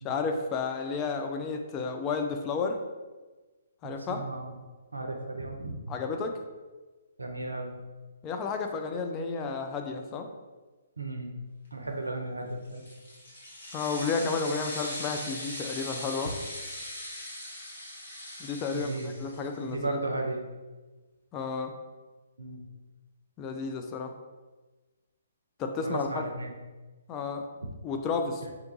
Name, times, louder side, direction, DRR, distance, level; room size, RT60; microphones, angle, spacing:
voice 1, 0.0-2.8 3.8-4.2 5.9-6.4 8.2-10.3 13.7-16.4 18.4-18.9 19.2-20.0 21.3-21.8 23.4-24.2 25.6-26.2 27.1-27.5 27.8-28.4, left 4 dB, 25° left, 5 dB, 0.3 m, -32 dB
voice 2, 3.8-4.6 4.9-5.9 7.2-7.8 11.0-11.4 11.7-12.8 16.2-16.3 18.7-19.1 19.6-20.5 22.4-22.6 25.8-26.5 28.4-28.5, right 2 dB, 85° right, 4 dB, 0.5 m, -35 dB
sound 1, 12.6-19.6, left 1 dB, 65° left, 1.3 m, -40 dB
2.8 x 2.3 x 3.8 m, 1.2 s
figure-of-eight pair, 130°, 0 cm